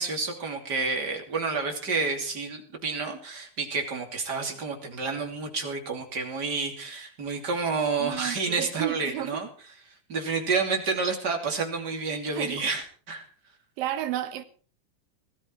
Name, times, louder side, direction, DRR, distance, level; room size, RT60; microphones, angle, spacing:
voice 1, 0.0-9.5 10.1-13.2, right 4 dB, 30° right, 3.0 m, -29 dB
voice 2, 8.0-9.4 12.3-12.7 13.8-14.5, right 12 dB, 80° right, 3.0 m, -32 dB
19.5 x 13.0 x 4.6 m
omnidirectional pair, 4.0 m